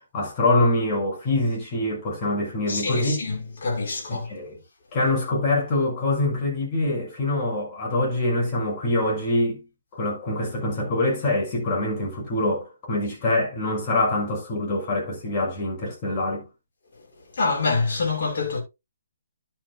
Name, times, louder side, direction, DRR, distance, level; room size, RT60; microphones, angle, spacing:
voice 1, 0.1-3.2 4.1-4.6 4.9-9.6 9.9-16.4, left 2 dB, 30° left, 6.1 m, -24 dB
voice 2, 2.7-4.3 17.3-18.6, left 3 dB, 50° left, 6.2 m, -26 dB
11.5 x 10.5 x 2.3 m
hypercardioid pair, 155°, 0 cm